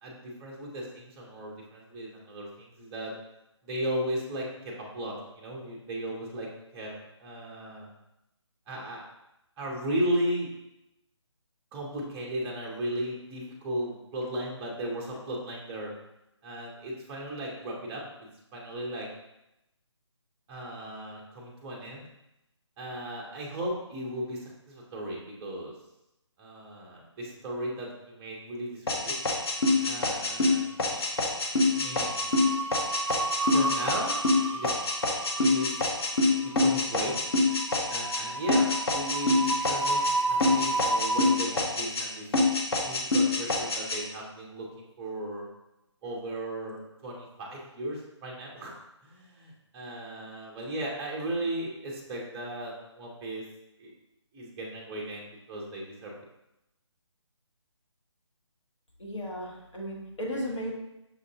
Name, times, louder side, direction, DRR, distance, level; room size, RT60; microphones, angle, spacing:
voice 1, 0.0-3.1 3.6-6.5 6.7-6.9 7.2-7.9 8.7-9.0 9.6-10.5 11.7-15.9 16.4-18.0 18.5-19.1 20.5-22.0 22.8-25.7 26.4-29.1 29.8-31.1 31.7-32.3 33.5-34.7 35.4-35.8 36.4-37.1 37.9-42.3 42.8-45.4 46.0-48.7 49.0-53.4 53.8-53.9 54.3-56.1, right 1 dB, 10° right, -2 dB, 0.4 m, -36 dB
sound 1, 28.9-38.2 38.5-40.1 40.4-42.1 42.3-44.0, left 2 dB, 55° left, 0.7 m, -25 dB
sound 2, 29.3-30.1 30.3-30.6 31.8-41.3, right 3 dB, 70° right, 0.4 m, -32 dB
voice 2, 59.0-60.7, equal, 85° left, -3 dB, 1.4 m, -35 dB
6.0 x 2.5 x 2.7 m, 0.89 s
figure-of-eight pair, 150°, 15 cm